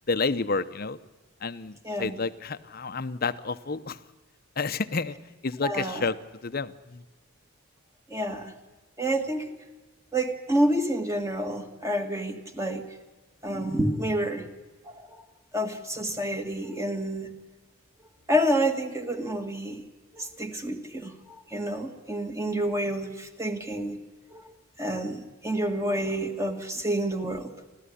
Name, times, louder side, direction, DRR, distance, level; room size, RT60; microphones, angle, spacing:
voice 1, 0.1-1.0 1.4-4.0 4.6-5.2 5.4-6.2 6.4-7.0, left 4 dB, 45° left, 13 dB, 0.8 m, -30 dB
voice 2, 1.8-2.2 5.6-6.1 8.1-8.5 9.0-9.5 10.1-12.8 13.4-14.5 14.9-15.1 15.5-17.3 18.3-19.8 20.1-21.2 21.5-24.0 24.3-27.5, right 1 dB, 15° right, 5 dB, 1.8 m, -28 dB
29.5 x 13.0 x 10.0 m, 1.3 s
head